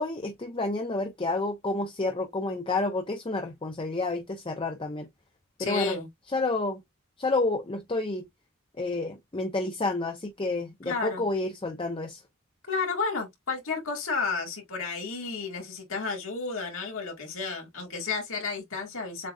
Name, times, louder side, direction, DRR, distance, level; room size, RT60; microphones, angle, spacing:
voice 1, 0.0-5.1 5.6-6.0 6.3-6.8 7.2-8.3 8.8-12.2, left 2 dB, 25° left, 0.7 m, -30 dB
voice 2, 5.6-6.1 10.8-11.2 12.7-19.3, left 4 dB, 70° left, 2.4 m, -32 dB
7.4 x 2.8 x 2.3 m
head